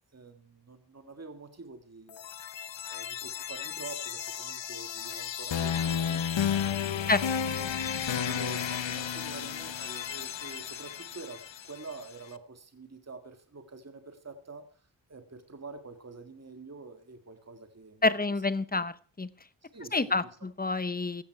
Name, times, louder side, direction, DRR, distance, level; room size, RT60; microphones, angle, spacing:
voice 1, 0.1-2.2 2.9-6.5 6.9-7.6 7.9-18.0 18.7-18.8 19.6-20.3, right 3 dB, 35° right, 6 dB, 1.8 m, -47 dB
sound 1, 2.1-12.0, left 8 dB, 85° left, 0.9 m, -33 dB
voice 2, 18.0-19.3 19.9-21.2, left 3 dB, 20° left, 15 dB, 0.8 m, -28 dB
17.0 x 13.0 x 4.6 m, 0.41 s
wide cardioid pair, 110°, 43 cm